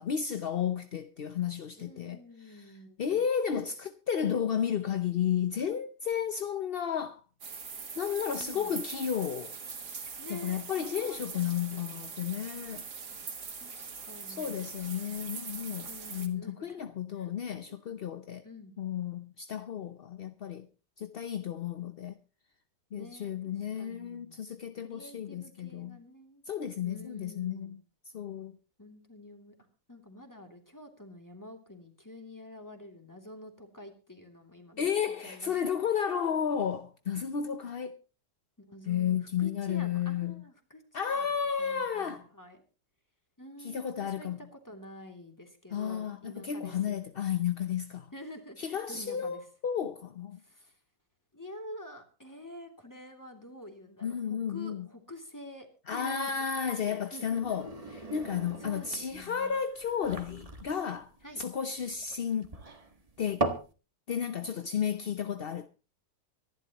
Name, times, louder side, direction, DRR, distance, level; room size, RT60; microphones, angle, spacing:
voice 1, 0.0-2.7 3.0-7.2 8.0-9.5 10.3-12.9 14.3-18.4 18.8-20.7 21.0-22.2 22.9-26.0 26.5-27.8 28.1-28.6 34.8-38.0 38.9-40.4 40.9-42.3 43.6-44.4 45.7-48.1 48.6-50.4 54.0-54.9 55.9-57.7 57.9-61.1 61.4-62.5 63.2-63.4 64.1-65.7, left 8 dB, 50° left, 0.7 m, -32 dB
voice 2, 1.7-3.2 8.3-8.7 10.2-12.0 13.6-14.8 15.8-17.8 18.4-18.7 22.9-24.4 24.8-26.4 26.8-27.8 28.8-29.6 29.9-34.9 35.2-35.6 38.7-42.6 43.4-47.0 48.1-49.5 50.4-50.8 51.3-57.6 58.6-59.5 61.2-61.4, left 1 dB, 10° left, 2.8 m, -48 dB
sound 1, 7.4-16.3, right 5 dB, 70° right, 2.5 m, -42 dB
sound 2, 57.2-63.7, right 2 dB, 20° right, 1.6 m, -38 dB
25.0 x 11.5 x 3.0 m
omnidirectional pair, 1.8 m